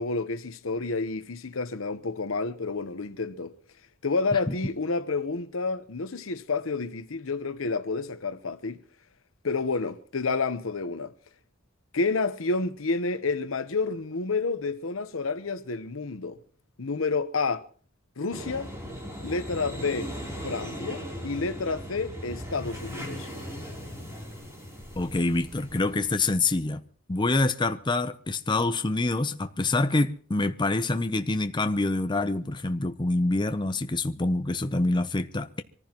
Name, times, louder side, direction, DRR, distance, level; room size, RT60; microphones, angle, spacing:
voice 1, 0.0-3.5 4.0-8.8 9.4-11.1 11.9-16.4 16.8-17.6 18.2-18.7 19.2-20.1 20.4-23.3, left 4 dB, 85° left, 1.0 m, -29 dB
sound 1, 18.3-26.3, equal, 15° right, 3.3 m, -38 dB
voice 2, 25.0-26.8 27.1-35.6, left 2 dB, 25° left, 0.6 m, -26 dB
24.5 x 14.5 x 3.0 m
head